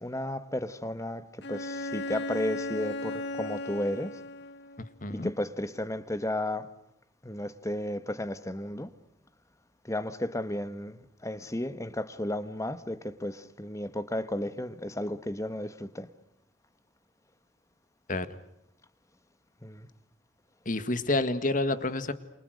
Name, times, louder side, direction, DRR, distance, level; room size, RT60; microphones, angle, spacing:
voice 1, 0.0-4.2 5.1-6.7 7.2-8.9 9.8-16.1 19.6-19.9, left 1 dB, 15° left, 1.3 m, -33 dB
Bowed string instrument, 1.4-4.9, left 2 dB, 65° left, 1.6 m, -36 dB
voice 2, 20.7-22.1, left 2 dB, 45° left, 1.8 m, -28 dB
28.5 x 28.5 x 6.5 m
head